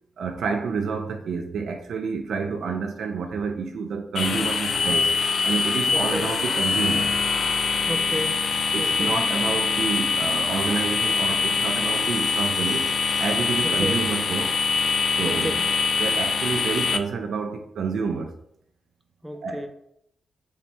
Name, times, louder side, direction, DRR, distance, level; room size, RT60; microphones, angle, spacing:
voice 1, 0.2-5.1 5.4-7.1 8.7-12.9 13.2-14.6 15.1-15.6 16.0-18.3 19.4-19.7, right 5 dB, 70° right, 5 dB, 0.4 m, -29 dB
sound 1, 4.1-17.0, left 4 dB, 60° left, 0.3 m, -24 dB
voice 2, 5.9-6.3 7.9-8.5 8.8-9.2 13.6-14.0 15.2-15.7 19.2-19.7, equal, 10° right, 5 dB, 0.7 m, -31 dB
4.2 x 2.8 x 3.4 m, 0.73 s
hypercardioid pair, 40°, 0 cm